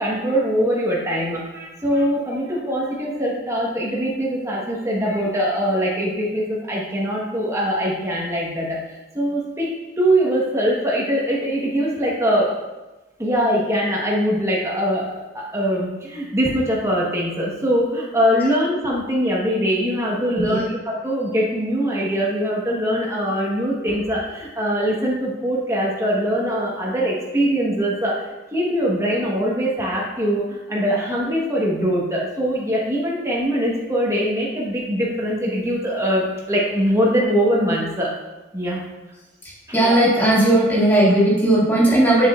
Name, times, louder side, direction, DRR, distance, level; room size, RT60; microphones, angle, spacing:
voice 1, 0.0-9.7 10.0-12.5 13.2-28.1 28.5-38.1 38.5-38.8, equal, 15° right, -4 dB, 1.2 m, -22 dB
voice 2, 39.7-42.3, right 1 dB, 10° left, -7 dB, 2.1 m, -16 dB
7.3 x 6.9 x 2.4 m, 1.1 s
head